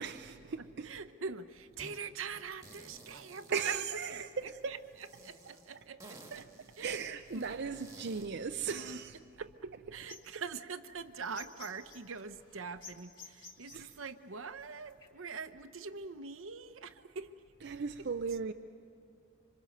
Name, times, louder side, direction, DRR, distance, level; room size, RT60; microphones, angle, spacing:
voice 1, 0.0-1.0 3.5-4.7 6.3-6.5 6.8-9.2 9.6-10.0 13.7-13.9 17.6-18.5, right 6 dB, 55° right, 0.5 m, -37 dB
voice 2, 0.6-6.5 6.8-7.0 7.3-7.5 8.7-9.0 9.4-9.5 9.9-17.3 17.6-17.8, right 5 dB, 75° right, 0.9 m, -44 dB
sound 1, 1.8-2.0 2.3-4.5 5.0-8.3, right 2 dB, 15° right, 1.6 m, -55 dB
sound 2, 10.0-15.1, left 5 dB, 25° left, 4.0 m, -53 dB
26.5 x 26.0 x 6.7 m
head